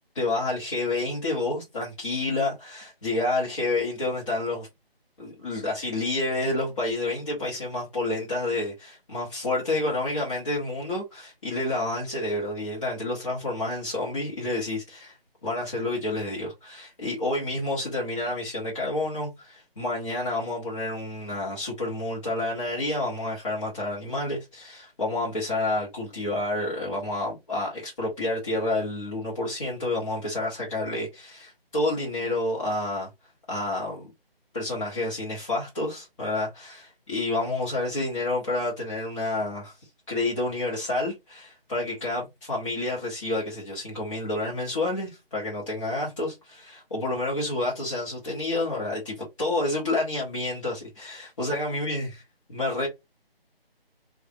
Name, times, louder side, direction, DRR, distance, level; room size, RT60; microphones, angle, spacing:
voice 1, 0.1-4.7 5.2-15.2 15.4-33.1 33.5-34.1 34.5-39.8 40.1-52.1 52.5-52.9, left 2 dB, 30° left, 1.0 m, -29 dB
3.4 x 2.4 x 2.5 m
figure-of-eight pair, 155°, 30 cm